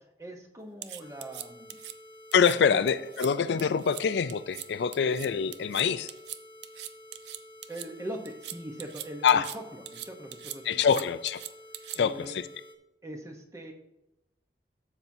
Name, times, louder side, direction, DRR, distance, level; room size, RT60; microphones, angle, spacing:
voice 1, 0.2-1.8 2.6-2.8 7.7-10.8 11.9-12.4 13.0-13.7, right 1 dB, 15° right, 3 dB, 0.9 m, -41 dB
sound 1, 0.8-1.9 2.3-2.6 2.9-3.3 3.6-4.0 4.3-4.7 4.9-7.9 8.2-9.6 9.9-12.2, right 12 dB, 75° right, 0.4 m, -41 dB
sound 2, 1.0-12.8, left 1 dB, 25° left, 0.9 m, -51 dB
voice 2, 2.3-6.1 9.2-9.5 10.7-11.4 11.9-12.5, left 6 dB, 80° left, 13 dB, 0.4 m, -25 dB
12.0 x 7.2 x 2.7 m, 0.92 s
head